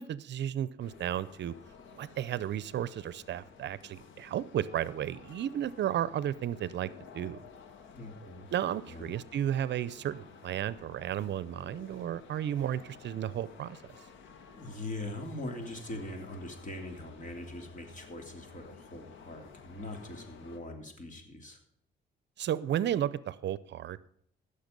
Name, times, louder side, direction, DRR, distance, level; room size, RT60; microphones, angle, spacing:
voice 1, 0.0-1.5 1.9-7.4 8.5-13.8 22.4-24.1, right 11 dB, 60° right, 18 dB, 0.6 m, -33 dB
sound 1, 0.8-20.6, left 6 dB, 75° left, 1.6 m, -53 dB
voice 2, 7.9-8.5 8.9-9.2 14.6-21.6, left 1 dB, 40° left, 4 dB, 3.0 m, -42 dB
15.5 x 6.7 x 5.3 m, 0.69 s
cardioid pair, 90°, 20 cm